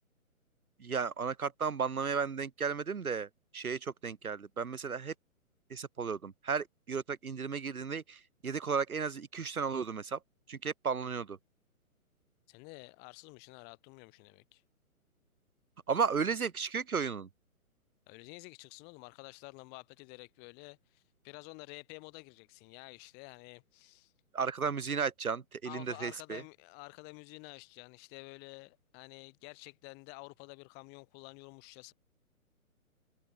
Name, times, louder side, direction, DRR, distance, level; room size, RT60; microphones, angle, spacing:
voice 1, 0.8-3.3 3.5-5.1 5.7-10.2 10.5-11.4 15.9-17.3 24.3-26.4, right 5 dB, 75° right, 1.0 m, -34 dB
voice 2, 12.5-14.6 18.1-24.1 25.6-31.9, left 32 dB, 20° left, 6.5 m, -50 dB
figure-of-eight pair, 130°, 44 cm